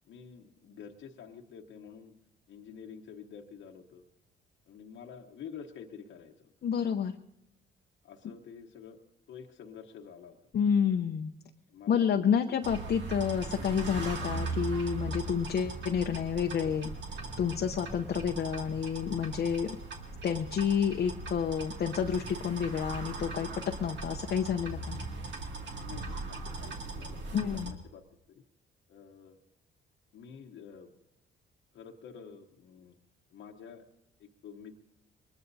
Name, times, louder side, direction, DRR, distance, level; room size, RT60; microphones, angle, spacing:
voice 1, 0.0-2.1 2.5-4.0 4.7-6.5 8.0-9.0 9.3-10.5 11.7-12.6 25.8-28.0 28.3-28.4 28.9-29.4 30.1-30.9 31.7-33.0 33.3-33.8 34.2-34.7, left 7 dB, 75° left, 1 dB, 1.1 m, -49 dB
voice 2, 6.6-7.1 10.5-11.3 11.9-16.9 17.4-19.8 20.2-25.0 27.3-27.7, left 7 dB, 55° left, 4 dB, 0.7 m, -29 dB
sound 1, 12.6-27.7, right 3 dB, 65° right, 2.3 m, -39 dB
23.0 x 20.0 x 2.7 m, 0.84 s
cardioid pair, 90°, 20 cm